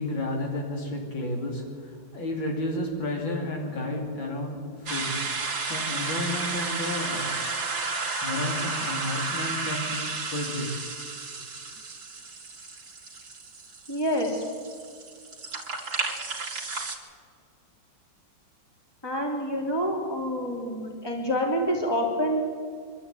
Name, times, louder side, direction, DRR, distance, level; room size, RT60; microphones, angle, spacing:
voice 1, 0.0-7.5 8.2-10.0 10.3-10.8, left 1 dB, 75° left, 1 dB, 3.7 m, -32 dB
sound 1, 4.9-17.0, right 4 dB, 55° right, 2.9 m, -32 dB
voice 2, 13.9-14.4 19.0-22.4, equal, 10° left, -1 dB, 3.3 m, -27 dB
25.0 x 12.5 x 9.2 m, 2.1 s
omnidirectional pair, 2.1 m